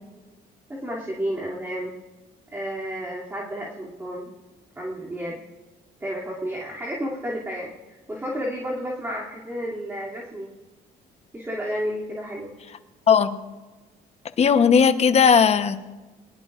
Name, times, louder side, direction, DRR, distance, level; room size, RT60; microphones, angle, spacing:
voice 1, 0.7-1.9 2.5-4.3 4.8-5.4 6.0-7.7 8.1-10.5 11.3-12.5, equal, 15° right, -5 dB, 2.7 m, -31 dB
voice 2, 13.1-13.4 14.4-15.9, left 6 dB, 40° left, 10 dB, 0.9 m, -17 dB
22.0 x 19.0 x 2.5 m, 1.2 s
cardioid pair, 110°, 17 cm